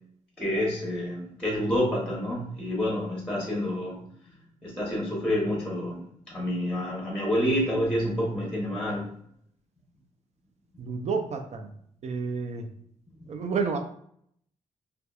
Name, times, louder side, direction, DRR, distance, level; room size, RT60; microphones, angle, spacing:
voice 1, 0.4-4.0 4.3-4.4 4.6-9.1, equal, 5° left, -4 dB, 1.0 m, -28 dB
voice 2, 10.8-11.7 12.0-12.7 13.3-13.8, right 5 dB, 55° right, 5 dB, 0.4 m, -30 dB
2.7 x 2.3 x 2.3 m, 0.67 s
cardioid pair, 70°, 14 cm